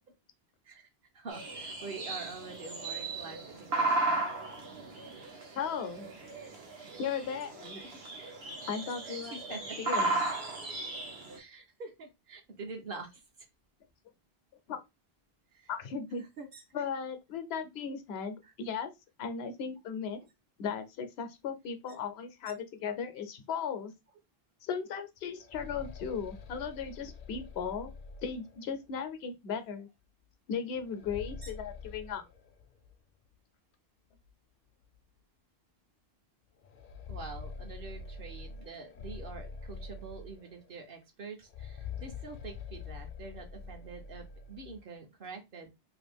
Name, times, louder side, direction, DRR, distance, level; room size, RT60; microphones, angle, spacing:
voice 1, 1.1-4.2 7.8-8.0 9.0-9.8 11.3-13.1 15.5-15.7 16.4-16.8 18.4-18.5 31.4-31.5 37.1-45.7, right 4 dB, 65° right, 0.9 m, -46 dB
sound 1, 1.3-11.4, right 2 dB, 80° right, 1.2 m, -35 dB
voice 2, 5.5-6.1 7.0-7.8 8.7-10.2 14.7-14.8 15.7-16.2 16.7-18.9 19.2-20.2 20.6-23.9 24.7-27.9 28.2-29.9 30.5-32.2, left 6 dB, 80° left, 0.9 m, -36 dB
sound 2, 25.2-29.0 30.7-32.9 33.3-33.4 34.2-34.3 34.8-35.0 36.6-40.7 41.4-44.8, left 4 dB, 60° left, 0.6 m, -45 dB
2.8 x 2.5 x 3.4 m
omnidirectional pair, 1.1 m